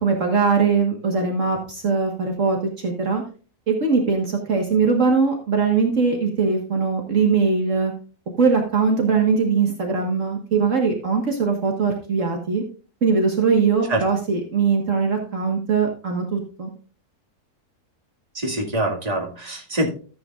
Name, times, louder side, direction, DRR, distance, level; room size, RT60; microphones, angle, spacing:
voice 1, 0.0-3.2 3.7-7.9 8.4-12.6 13.0-16.7, right 5 dB, 55° right, 2 dB, 1.8 m, -21 dB
voice 2, 18.3-19.9, right 1 dB, 25° right, 0 dB, 2.1 m, -24 dB
14.0 x 8.4 x 2.4 m, 0.37 s
omnidirectional pair, 1.6 m